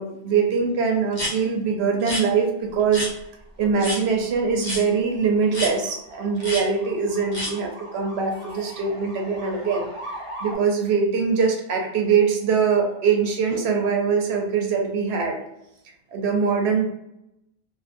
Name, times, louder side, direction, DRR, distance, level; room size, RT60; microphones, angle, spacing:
voice 1, 0.0-3.1 3.6-15.4 16.1-16.9, right 5 dB, 75° right, 2 dB, 0.8 m, -23 dB
sound 1, 1.1-1.3 2.0-2.2 2.9-3.1 3.8-4.0 4.6-4.8 5.5-5.7 6.4-6.6 7.3-7.5, left 1 dB, 45° left, 1.0 m, -28 dB
sound 2, 2.7-10.6, right 1 dB, 30° right, 1.0 m, -41 dB
2.5 x 2.4 x 2.5 m, 0.84 s
omnidirectional pair, 1.1 m